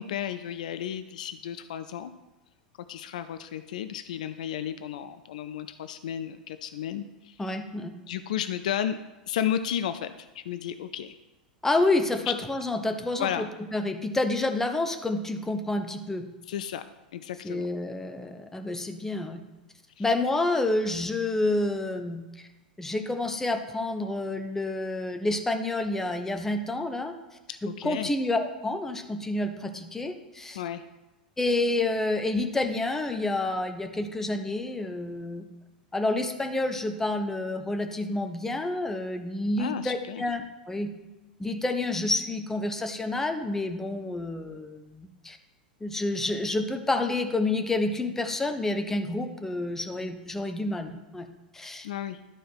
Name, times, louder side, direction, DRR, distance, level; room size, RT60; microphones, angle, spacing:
voice 1, 0.0-2.1 2.9-7.4 8.1-9.0 9.3-11.2 12.3-12.4 13.2-13.5 16.5-16.8 17.1-17.7 20.0-20.1 27.7-28.1 30.5-30.8 39.6-40.2 51.8-52.2, left 10 dB, 60° left, 11 dB, 0.4 m, -33 dB
voice 2, 7.4-7.9 11.6-13.5 13.7-16.3 17.4-19.4 20.0-22.5 22.8-27.1 27.6-30.6 31.4-35.5 35.9-40.9 41.4-45.4 45.8-51.3 51.5-51.9, left 2 dB, 10° left, 6 dB, 0.8 m, -29 dB
11.5 x 4.6 x 4.5 m, 1.1 s
figure-of-eight pair, 85°, 5 cm